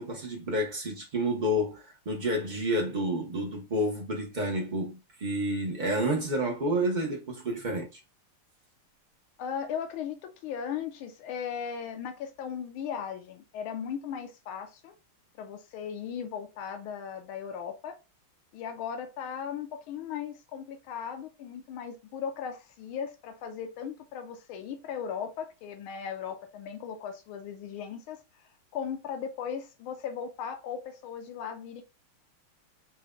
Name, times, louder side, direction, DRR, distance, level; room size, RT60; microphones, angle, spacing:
voice 1, 0.0-7.9, equal, 70° right, 0.4 m, -29 dB
voice 2, 9.4-14.9 15.4-18.0 18.5-28.2 28.7-31.8, left 7 dB, 80° left, 1.6 m, -37 dB
6.0 x 2.2 x 3.7 m
omnidirectional pair, 2.3 m